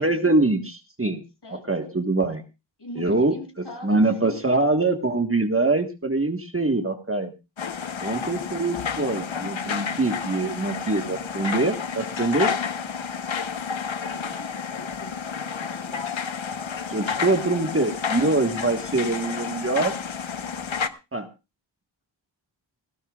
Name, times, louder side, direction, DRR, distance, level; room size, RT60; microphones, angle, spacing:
voice 1, 0.0-1.2 1.5-2.4 3.0-3.3 3.8-7.3 8.0-12.6 15.7-16.0 16.9-20.0 21.1-21.3, right 2 dB, 30° right, 6 dB, 1.5 m, -24 dB
voice 2, 1.4-1.9 2.8-4.5 14.0-16.1, left 1 dB, 60° left, 2 dB, 7.3 m, -42 dB
sound 1, 7.6-20.9, left 6 dB, 80° left, 1.0 m, -30 dB
19.0 x 16.5 x 2.4 m, 0.28 s
wide cardioid pair, 65°, 46 cm